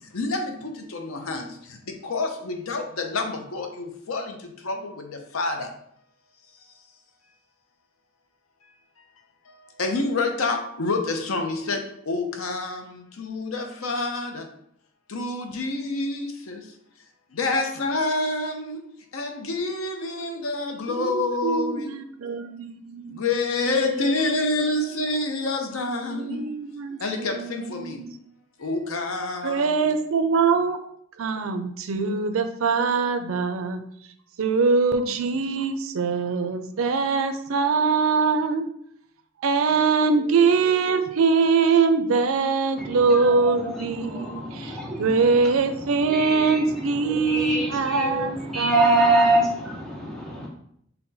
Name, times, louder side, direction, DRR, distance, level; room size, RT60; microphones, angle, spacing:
voice 1, 0.1-1.5 1.9-4.4 4.6-5.7 9.8-14.4 15.1-16.6 17.3-18.8 19.1-21.9 23.1-26.4 27.0-28.0 28.6-29.8, left 3 dB, 85° left, 4 dB, 0.7 m, -28 dB
voice 2, 21.0-23.2 23.7-24.3 26.1-27.0 27.3-28.1 29.4-30.8 31.2-33.8 34.4-38.7 39.4-49.6, right 4 dB, 80° right, 8 dB, 0.5 m, -23 dB
voice 3, 42.8-50.5, right 1 dB, ahead, -4 dB, 0.9 m, -26 dB
5.7 x 2.2 x 4.0 m, 0.68 s
head